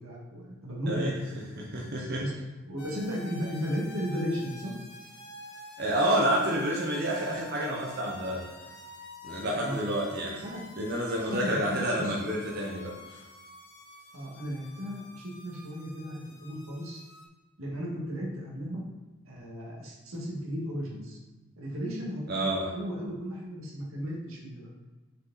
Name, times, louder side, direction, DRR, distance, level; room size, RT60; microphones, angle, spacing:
voice 1, 0.0-1.5 2.0-2.3 2.7-4.7 9.6-9.8 10.4-10.6 11.3-12.2 14.1-17.0 17.6-18.8 19.3-21.2 21.6-22.5 22.7-24.7, equal, 90° right, -3 dB, 1.9 m, -35 dB
voice 2, 0.9-1.2 1.6-2.2 5.8-8.5 9.2-10.4 10.8-13.3 22.3-22.7, right 1 dB, 50° right, -3 dB, 0.9 m, -29 dB
sound 1, 2.8-17.3, left 2 dB, 55° left, 1.4 m, -48 dB
6.3 x 4.9 x 4.0 m, 1.2 s
head